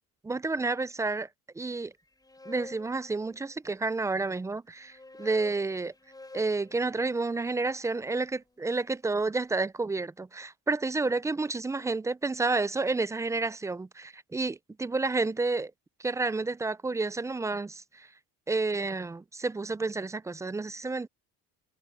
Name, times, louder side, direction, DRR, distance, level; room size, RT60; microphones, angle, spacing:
voice 1, 0.2-1.3 1.6-1.9 2.5-5.9 6.3-15.7 16.0-18.1 18.5-21.1, right 3 dB, 10° right, 0.3 m, -30 dB
sound 1, 2.0-3.9 4.7-8.8, left 2 dB, 10° left, 4.5 m, -50 dB
cardioid pair, 115°, 36 cm